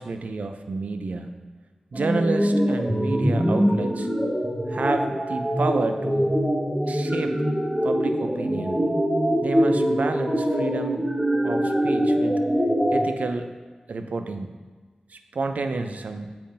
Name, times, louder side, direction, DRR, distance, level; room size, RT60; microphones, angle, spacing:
voice 1, 0.0-1.4 1.9-4.1 4.7-6.4 6.9-7.4 7.8-8.8 9.4-11.0 11.4-12.4 12.9-13.5 13.9-14.6 15.1-16.4, right 3 dB, 90° right, 7 dB, 0.4 m, -30 dB
sound 1, 1.9-13.1, equal, 10° right, 1.1 m, -23 dB
8.4 x 5.6 x 2.6 m, 1.3 s
wide cardioid pair, 65°, 2 cm